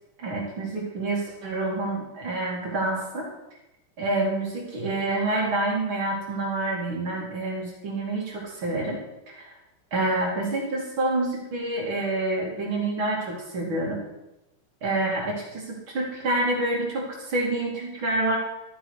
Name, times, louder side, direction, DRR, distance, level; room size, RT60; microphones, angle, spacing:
voice 1, 0.2-3.3 4.0-9.0 9.3-9.5 9.9-14.0 14.8-18.4, right 2 dB, 40° right, -1 dB, 2.9 m, -27 dB
12.5 x 9.3 x 4.7 m, 0.93 s
omnidirectional pair, 3.6 m